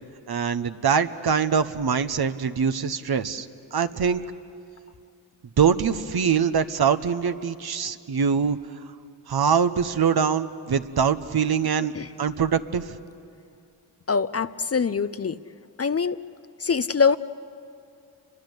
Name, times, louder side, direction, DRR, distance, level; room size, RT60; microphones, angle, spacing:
voice 1, 0.3-4.2 5.6-8.6 9.3-11.9 12.2-12.9, right 6 dB, 50° right, 10 dB, 1.2 m, -23 dB
voice 2, 14.1-15.4 15.8-16.2 16.6-17.2, left 5 dB, 30° left, 13 dB, 0.7 m, -23 dB
30.0 x 23.0 x 8.2 m, 2.4 s
supercardioid pair, 50°, 47 cm